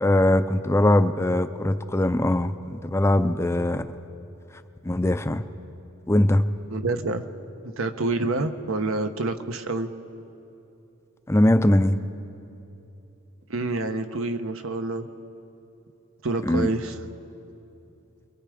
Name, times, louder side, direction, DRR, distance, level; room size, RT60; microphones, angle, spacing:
voice 1, 0.0-3.9 4.8-5.4 6.1-6.4 11.3-12.0 16.4-16.7, left 1 dB, 15° left, 10 dB, 0.5 m, -21 dB
voice 2, 6.7-7.2 7.6-9.9 13.5-15.1 16.2-17.0, right 2 dB, 75° right, 7 dB, 1.0 m, -27 dB
28.0 x 22.5 x 5.0 m, 2.9 s
head